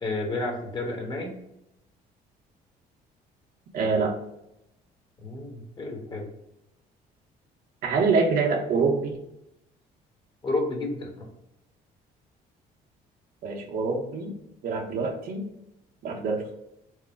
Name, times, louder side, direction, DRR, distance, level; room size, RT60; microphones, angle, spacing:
voice 1, 0.0-1.3 5.2-6.3 10.4-11.3, left 2 dB, 25° left, 1 dB, 1.2 m, -31 dB
voice 2, 3.7-4.1 7.8-9.2 13.4-14.3 14.6-15.5 16.0-16.5, right 4 dB, 60° right, 2 dB, 0.9 m, -25 dB
4.7 x 2.2 x 4.4 m, 0.84 s
cardioid pair, 110°, 17 cm